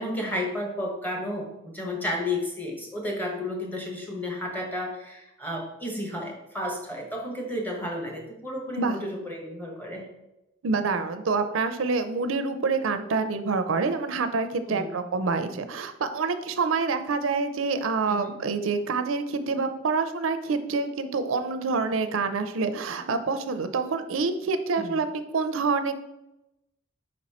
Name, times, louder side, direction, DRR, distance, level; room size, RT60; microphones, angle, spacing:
voice 1, 0.0-10.1 14.7-14.9 18.1-18.4 24.8-25.0, left 1 dB, 10° left, 0 dB, 1.1 m, -32 dB
voice 2, 10.6-25.1 25.3-25.9, right 4 dB, 80° right, 10 dB, 0.5 m, -27 dB
5.3 x 4.2 x 4.1 m, 0.92 s
head